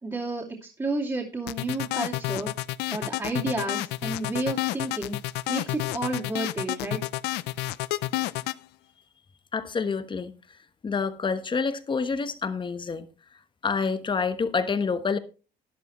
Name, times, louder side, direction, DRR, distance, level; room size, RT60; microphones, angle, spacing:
voice 1, 0.0-2.5 2.9-5.2 5.5-7.0, right 2 dB, 20° right, 2.7 m, -31 dB
sound 1, 1.5-8.6, left 17 dB, 85° left, 0.5 m, -30 dB
voice 2, 9.5-10.3 10.8-13.1 13.6-15.2, left 5 dB, 30° left, 1.2 m, -27 dB
12.5 x 11.0 x 3.1 m
cardioid pair, 110°, 17 cm